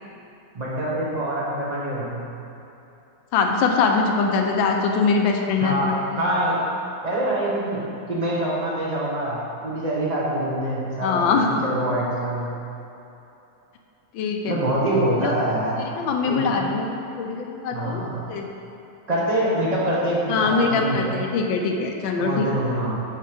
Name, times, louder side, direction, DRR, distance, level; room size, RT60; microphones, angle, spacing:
voice 1, 0.5-2.2 5.6-6.6 7.0-7.8 8.1-11.3 11.6-12.5 14.5-15.7 16.3-16.7 17.7-18.2 19.1-21.2 22.2-22.9, right 1 dB, 25° right, -6 dB, 1.0 m, -25 dB
voice 2, 3.3-5.9 11.0-11.6 14.1-14.5 15.2-15.3 16.0-18.0 18.3-18.5 20.3-22.5, left 4 dB, 75° left, 2 dB, 1.4 m, -22 dB
6.6 x 4.6 x 5.0 m, 2.9 s
omnidirectional pair, 2.2 m